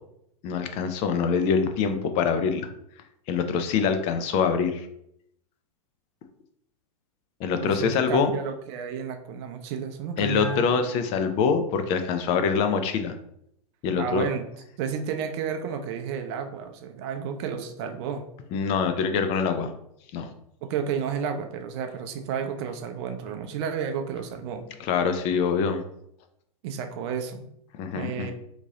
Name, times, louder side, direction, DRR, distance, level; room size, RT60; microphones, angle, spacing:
voice 1, 0.4-2.6 3.3-4.9 7.4-8.3 10.2-13.1 13.8-14.3 18.5-19.7 20.1-20.3 24.8-25.8 27.8-28.3, left 6 dB, 35° left, 7 dB, 0.4 m, -24 dB
voice 2, 7.6-10.7 14.0-14.4 14.8-18.2 20.6-24.6 26.6-27.5 27.9-28.3, right 7 dB, 45° right, 6 dB, 0.5 m, -31 dB
Bell, 10.4-12.0, right 2 dB, 75° left, 0.9 m, -43 dB
2.9 x 2.7 x 3.7 m, 0.74 s
hypercardioid pair, 110°, 19 cm